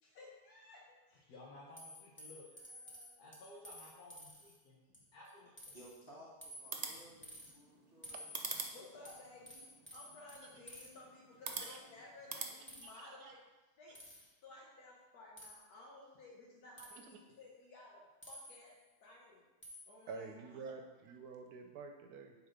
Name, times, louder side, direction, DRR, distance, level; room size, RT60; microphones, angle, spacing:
voice 1, 0.0-5.5 8.7-9.7 9.9-13.4 13.8-14.0 14.4-18.7 19.0-19.4 19.9-20.8, left 2 dB, 90° left, -4 dB, 1.6 m, -56 dB
sound 1, 1.8-4.6 4.9-5.3 5.6-6.0 6.4-7.5 8.0-10.9 11.5-11.7 12.7-13.1 13.9-14.3 15.4-15.6 16.8-17.2 18.2-18.8 19.6-20.0, equal, 10° left, 1.1 m, -53 dB
voice 2, 5.7-8.5, equal, 35° left, -7 dB, 1.9 m, -58 dB
sound 2, 6.5-12.5, right 4 dB, 50° right, 0.4 m, -47 dB
voice 3, 12.8-13.3 17.0-17.1 20.1-22.3, right 4 dB, 85° right, 4 dB, 1.1 m, -49 dB
8.1 x 3.6 x 5.0 m, 1.2 s
omnidirectional pair, 1.6 m